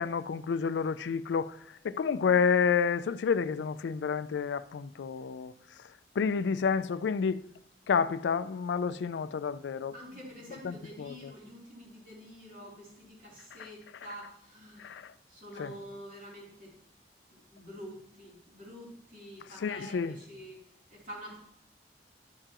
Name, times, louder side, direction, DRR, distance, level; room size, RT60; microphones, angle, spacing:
voice 1, 0.0-1.6 1.8-5.5 6.2-7.4 7.9-9.9 10.6-11.3 13.6-13.7 14.8-15.1 15.6-15.7 19.6-20.1, left 6 dB, 85° left, 0.4 m, -29 dB
voice 2, 9.9-15.0 15.3-16.7 17.3-20.6 20.9-21.4, equal, 50° right, 3.2 m, -47 dB
11.5 x 6.7 x 2.9 m
head